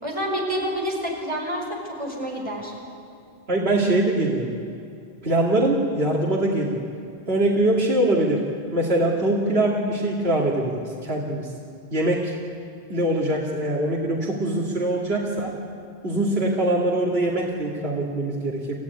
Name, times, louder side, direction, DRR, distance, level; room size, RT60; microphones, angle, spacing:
voice 1, 0.0-2.7, equal, 30° right, 0 dB, 4.9 m, -28 dB
voice 2, 3.5-4.5 5.2-6.8 7.3-8.4 8.7-11.5 11.9-12.3 12.9-15.5 16.0-18.7, right 1 dB, 70° right, -4 dB, 2.8 m, -23 dB
28.5 x 15.0 x 9.7 m, 2.4 s
omnidirectional pair, 1.1 m